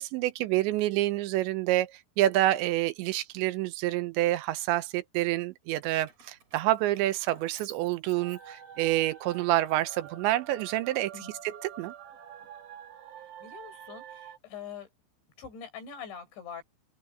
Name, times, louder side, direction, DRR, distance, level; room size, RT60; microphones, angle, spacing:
voice 1, 0.0-11.1 11.4-11.9, right 15 dB, 85° right, 2.9 m, -28 dB
Keys jangling, 5.8-8.9 9.4-10.7, right 4 dB, 35° right, 4.9 m, -57 dB
sound 1, 8.1-14.4, right 8 dB, 65° right, 3.9 m, -47 dB
voice 2, 13.4-14.9 15.4-16.6, left 7 dB, 70° left, 8.2 m, -43 dB
open air
omnidirectional pair, 5.5 m